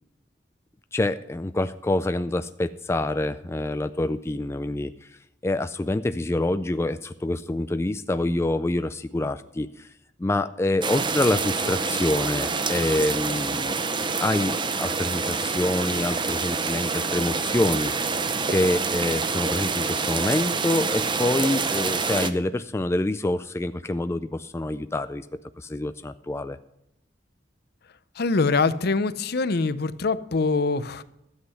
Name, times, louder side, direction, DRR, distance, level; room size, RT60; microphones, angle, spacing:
voice 1, 0.9-4.9 5.4-9.9 10.2-13.8 14.2-17.9 18.5-25.3 25.6-26.6, left 1 dB, 15° left, 10 dB, 0.3 m, -26 dB
sound 1, 10.8-22.3, right 4 dB, 25° right, 0.7 m, -27 dB
voice 2, 28.2-31.0, left 4 dB, 60° left, 14 dB, 0.6 m, -24 dB
13.0 x 8.2 x 5.6 m, 0.83 s
head